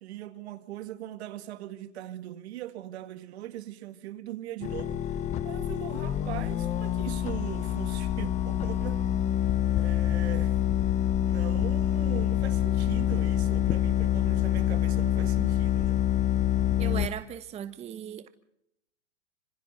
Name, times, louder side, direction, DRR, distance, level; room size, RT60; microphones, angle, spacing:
voice 1, 0.0-5.1 5.4-9.0 9.8-10.6 11.2-16.0, right 13 dB, 65° right, 2.1 m, -40 dB
sound 1, 4.6-17.1, left 12 dB, 20° left, 0.8 m, -26 dB
voice 2, 16.8-18.3, right 9 dB, 20° right, 1.0 m, -37 dB
26.5 x 26.0 x 3.9 m
hypercardioid pair, 145°, 35 cm